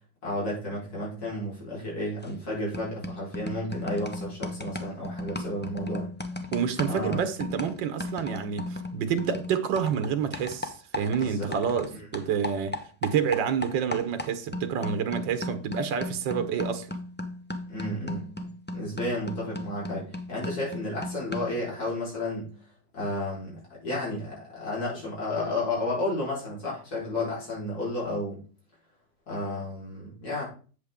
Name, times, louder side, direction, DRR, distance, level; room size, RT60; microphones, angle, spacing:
voice 1, 0.2-6.1 6.9-7.2 11.1-11.6 11.9-12.0 17.7-22.5 22.9-28.4 29.3-30.4, left 1 dB, 55° left, 5.0 m, -32 dB
sound 1, 2.2-2.5 2.7-11.9 12.1-21.6, left 1 dB, 10° left, 0.5 m, -36 dB
voice 2, 6.5-12.7 13.0-16.9, right 7 dB, 85° right, 1.6 m, -28 dB
8.2 x 8.0 x 3.6 m
omnidirectional pair, 1.9 m